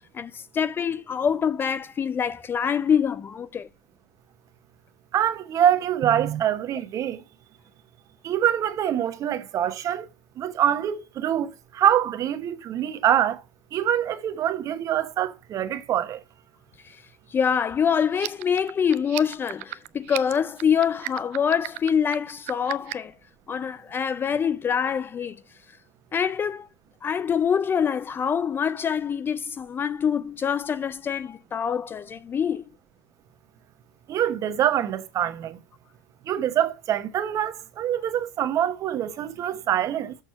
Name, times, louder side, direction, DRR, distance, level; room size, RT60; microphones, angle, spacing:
voice 1, 0.1-3.7 16.8-17.0 17.3-23.1 23.5-25.4 26.1-26.7 27.0-32.6, left 7 dB, 25° left, 0.5 m, -25 dB
voice 2, 5.1-7.2 8.2-10.1 10.4-13.4 13.7-16.2 34.1-35.6 36.3-40.2, right 10 dB, 40° right, 1.1 m, -25 dB
sound 1, 18.1-23.1, right 23 dB, 70° right, 0.5 m, -35 dB
6.6 x 6.1 x 5.7 m
supercardioid pair, 105°, 8 cm